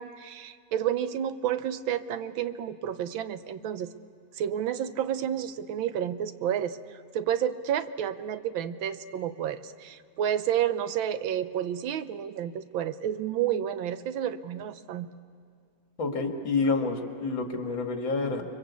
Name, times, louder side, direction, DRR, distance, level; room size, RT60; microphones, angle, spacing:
voice 1, 0.0-3.9 4.3-15.1, right 10 dB, 85° right, 12 dB, 1.6 m, -30 dB
voice 2, 16.0-18.4, left 3 dB, 75° left, 4 dB, 2.7 m, -28 dB
30.0 x 23.0 x 8.3 m, 2.3 s
omnidirectional pair, 2.1 m